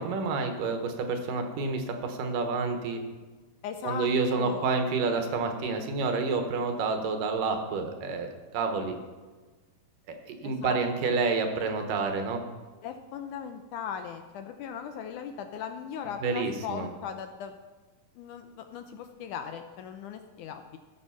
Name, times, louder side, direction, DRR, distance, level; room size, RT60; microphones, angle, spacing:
voice 1, 0.0-3.0 3.8-9.0 10.3-12.4 16.2-16.9, right 4 dB, 75° right, 5 dB, 2.7 m, -29 dB
voice 2, 3.6-4.1 4.3-4.7 10.4-10.8 12.8-17.5 18.2-20.8, left 8 dB, 80° left, 7 dB, 1.9 m, -38 dB
15.5 x 6.6 x 5.7 m, 1.4 s
omnidirectional pair, 4.0 m